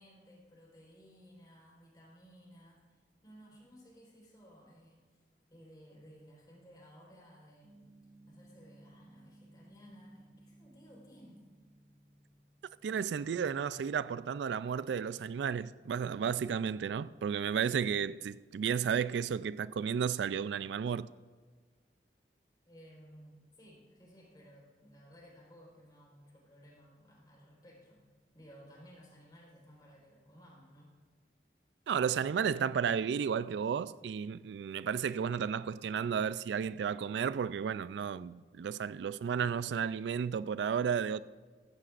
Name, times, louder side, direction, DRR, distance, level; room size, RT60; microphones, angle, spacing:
voice 1, 0.0-5.0 5.5-7.9 8.2-11.4 22.7-28.0 28.3-30.9, equal, 25° left, 4.2 m, -57 dB
Gong, 7.6-13.5, right 1 dB, 45° right, 2.1 m, -60 dB
voice 2, 12.8-21.1 31.9-41.2, right 7 dB, 85° right, 0.3 m, -33 dB
15.5 x 14.5 x 2.5 m
head